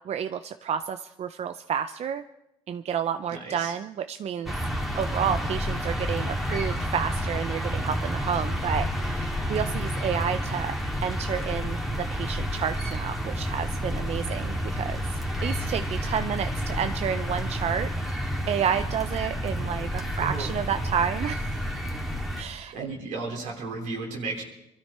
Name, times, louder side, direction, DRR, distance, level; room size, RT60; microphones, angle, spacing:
voice 1, 0.1-2.2 2.7-4.5 4.9-10.8 11.0-15.0 15.4-17.9 18.5-21.6 22.4-22.7, right 8 dB, 60° right, 10 dB, 0.6 m, -30 dB
voice 2, 3.3-3.7 20.2-20.5 22.7-24.4, right 3 dB, 90° right, 0 dB, 3.5 m, -34 dB
sound 1, 4.5-22.4, equal, ahead, 2.5 m, -30 dB
23.5 x 13.0 x 4.3 m, 0.90 s
supercardioid pair, 70°, 12 cm